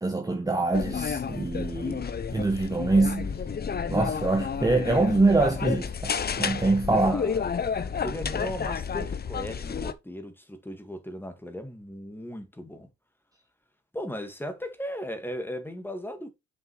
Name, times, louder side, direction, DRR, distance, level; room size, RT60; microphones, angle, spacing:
voice 1, 0.0-3.3 3.9-6.1 6.4-7.2, right 3 dB, 10° right, 1.2 m, -24 dB
sound 1, 0.7-9.9, left 6 dB, 30° left, 0.8 m, -31 dB
voice 2, 7.0-12.9 13.9-16.3, equal, 5° left, 1.9 m, -37 dB
7.1 x 6.3 x 3.2 m
cardioid pair, 90°, 30 cm